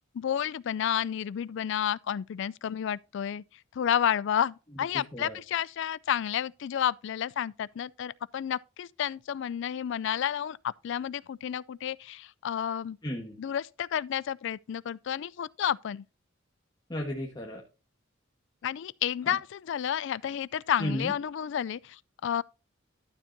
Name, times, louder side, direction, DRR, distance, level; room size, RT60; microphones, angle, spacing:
voice 1, 0.1-3.4 3.7-13.0 13.4-16.0 18.6-22.4, left 9 dB, 65° left, 0.3 m, -31 dB
voice 2, 13.0-13.4 16.9-17.6 19.2-19.4 20.8-21.1, equal, 20° left, 1.3 m, -34 dB
12.0 x 7.1 x 2.7 m
head